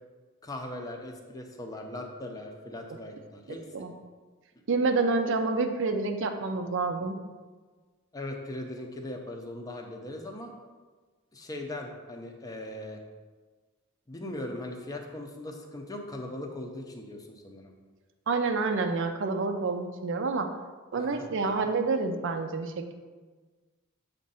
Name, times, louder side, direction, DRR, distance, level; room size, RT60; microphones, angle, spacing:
voice 1, 0.4-3.6 8.1-10.5 11.3-13.0 14.1-17.7 20.9-21.3 21.6-21.7, left 1 dB, 15° left, 2 dB, 0.6 m, -39 dB
voice 2, 4.7-7.2 18.3-20.5 20.9-22.9, right 3 dB, 60° right, 6 dB, 0.5 m, -28 dB
7.3 x 2.6 x 5.5 m, 1.4 s
head